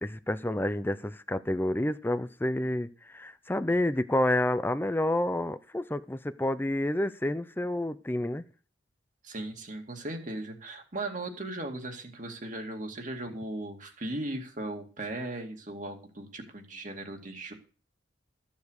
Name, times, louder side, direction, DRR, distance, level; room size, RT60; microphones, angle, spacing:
voice 1, 0.0-8.4, left 1 dB, 10° left, 0.5 m, -29 dB
voice 2, 9.2-17.5, right 2 dB, 40° right, 2.4 m, -37 dB
14.0 x 7.3 x 6.5 m
head